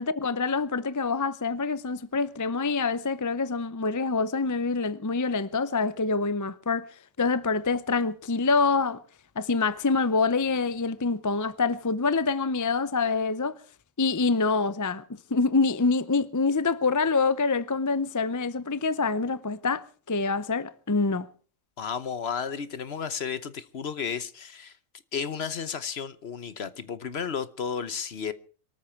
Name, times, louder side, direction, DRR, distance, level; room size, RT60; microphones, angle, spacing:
voice 1, 0.0-6.9 7.2-9.0 9.4-13.6 14.0-15.0 15.3-21.3, left 4 dB, 20° left, 0.5 m, -26 dB
voice 2, 21.8-24.8 25.1-28.3, left 6 dB, 55° left, 1.1 m, -33 dB
24.0 x 13.5 x 4.5 m
omnidirectional pair, 1.3 m